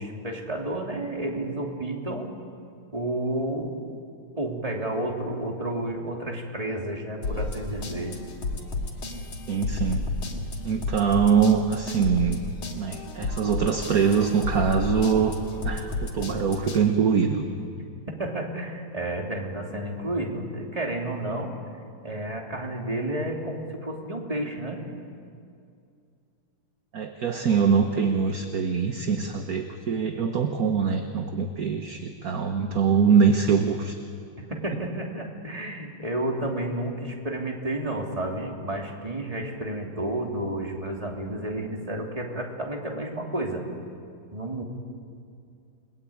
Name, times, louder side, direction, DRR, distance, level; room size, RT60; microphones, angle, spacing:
voice 1, 0.0-2.3 2.9-3.8 4.4-8.2 18.2-21.5 22.0-24.8 34.6-43.6 44.3-44.6, right 1 dB, 15° right, 0 dB, 3.2 m, -31 dB
sound 1, 7.2-16.8, left 3 dB, 80° left, 3.4 m, -32 dB
voice 2, 9.5-10.1 10.6-12.4 12.7-15.4 15.6-17.4 26.9-34.0, right 6 dB, 50° right, 6 dB, 1.6 m, -23 dB
29.5 x 21.0 x 8.8 m, 2.4 s
omnidirectional pair, 2.3 m